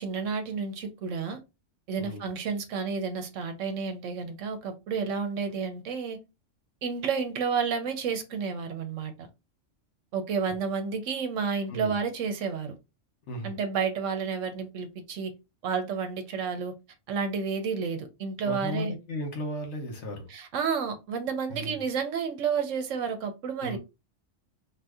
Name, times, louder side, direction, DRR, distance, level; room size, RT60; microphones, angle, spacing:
voice 1, 0.0-1.4 1.9-6.2 6.8-9.3 10.1-12.7 13.4-15.3 15.6-16.7 17.1-18.9 20.3-23.8, right 6 dB, 70° right, 1.0 m, -31 dB
voice 2, 18.4-20.3 21.5-21.8 23.6-23.8, left 1 dB, 60° left, 1.2 m, -35 dB
2.7 x 2.5 x 3.4 m
omnidirectional pair, 1.4 m